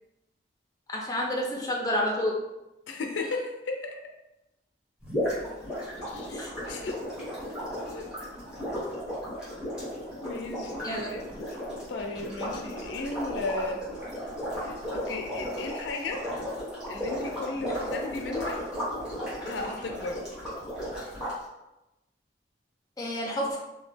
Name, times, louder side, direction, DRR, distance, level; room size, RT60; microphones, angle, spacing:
voice 1, 0.9-2.4 6.3-6.5 10.8-11.1 23.0-23.6, left 1 dB, 20° left, -2 dB, 0.5 m, -29 dB
voice 2, 2.9-4.0 6.0-6.4 6.6-7.0 7.9-8.1 10.2-11.4 11.7-13.9 14.6-16.3 16.9-18.6 19.4-20.2, left 3 dB, 90° left, 3 dB, 0.4 m, -35 dB
sound 1, 5.0-21.3, equal, 5° right, 1.0 m, -35 dB
2.8 x 2.2 x 3.4 m, 0.94 s
head